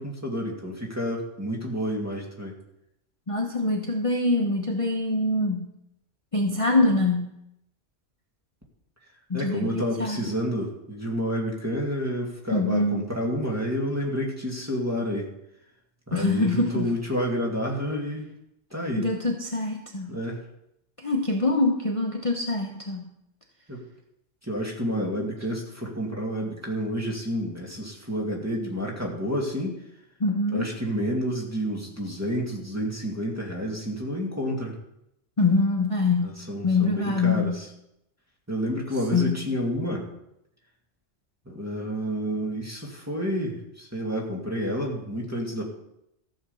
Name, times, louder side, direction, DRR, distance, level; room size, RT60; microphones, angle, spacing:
voice 1, 0.0-2.5 9.3-15.3 16.1-18.3 18.7-19.1 20.1-20.4 23.7-23.8 24.5-29.8 30.5-34.8 36.2-37.7 38.5-40.1 41.5-45.7, equal, 15° right, -1 dB, 2.2 m, -29 dB
voice 2, 3.3-5.7 6.3-7.3 9.3-10.3 12.5-13.1 16.1-16.9 19.0-20.1 21.0-23.0 30.2-30.7 35.4-36.3 36.6-37.6 39.1-39.5, left 2 dB, 30° left, 2 dB, 1.0 m, -24 dB
14.0 x 6.1 x 6.9 m, 0.82 s
omnidirectional pair, 1.2 m